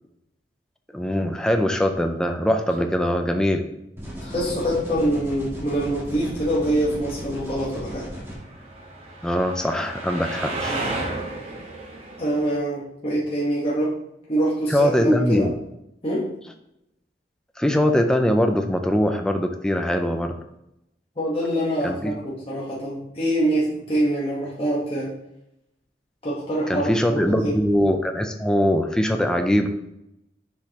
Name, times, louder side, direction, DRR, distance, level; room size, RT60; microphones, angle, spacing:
voice 1, 0.9-3.7 9.2-10.8 14.7-15.5 17.6-20.4 21.8-22.1 26.7-29.7, equal, 5° left, 5 dB, 0.4 m, -22 dB
sound 1, 4.0-8.3, equal, 15° right, 1.4 m, -35 dB
voice 2, 4.2-8.0 12.2-13.9 14.3-15.5 16.0-16.3 21.2-25.1 26.2-27.6, right 1 dB, 30° left, -6 dB, 1.2 m, -25 dB
sound 2, 7.9-12.5, right 2 dB, 35° right, 1.2 m, -33 dB
6.7 x 5.0 x 2.9 m, 0.83 s
head